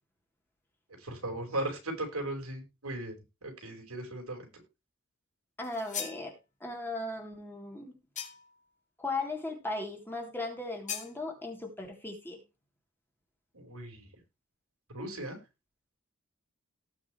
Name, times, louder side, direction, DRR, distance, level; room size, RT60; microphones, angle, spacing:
voice 1, 1.0-3.1 3.4-4.5 13.5-14.1 14.9-15.4, right 1 dB, 85° right, 3 dB, 5.1 m, -37 dB
sound 1, 5.6-6.3 8.2-8.6 10.9-11.1, left 8 dB, 35° left, 3.6 m, -39 dB
voice 2, 5.6-6.3 6.6-7.8 9.0-12.4, left 2 dB, 10° left, 1 dB, 3.4 m, -37 dB
18.5 x 6.3 x 3.2 m, 0.26 s
head